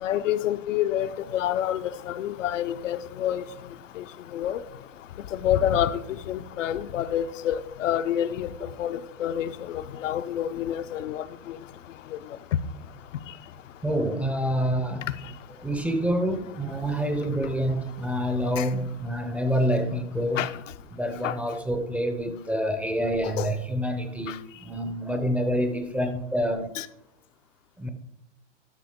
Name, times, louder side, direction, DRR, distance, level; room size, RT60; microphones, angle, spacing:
voice 1, 0.0-3.4 4.0-4.1 4.3-4.6 5.3-11.6 12.1-12.2 18.6-18.7 20.4-20.5 21.2-21.3 23.2-23.5 24.3-24.4 26.8-26.9, left 11 dB, 80° left, 0.7 m, -28 dB
voice 2, 13.8-15.0 15.6-20.5 20.9-26.7 27.8-27.9, equal, 5° right, 0.4 m, -27 dB
12.0 x 5.9 x 3.6 m
hypercardioid pair, 130°, 37 cm